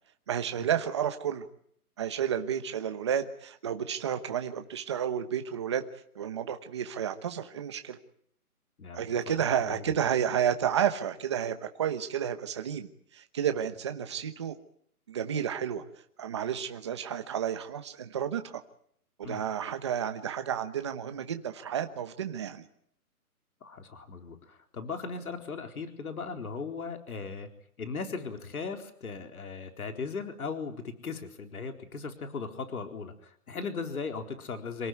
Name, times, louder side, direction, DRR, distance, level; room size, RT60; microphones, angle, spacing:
voice 1, 0.3-1.5 2.0-5.8 6.1-8.0 8.9-14.6 15.1-15.8 16.2-18.6 19.2-22.6, right 9 dB, 20° right, 7 dB, 1.0 m, -31 dB
voice 2, 8.8-9.4 9.7-10.0 19.2-19.4 23.6-27.5 27.8-34.9, left 4 dB, 70° left, 5 dB, 4.3 m, -38 dB
27.5 x 18.0 x 9.4 m, 0.66 s
hypercardioid pair, 175°, 45 cm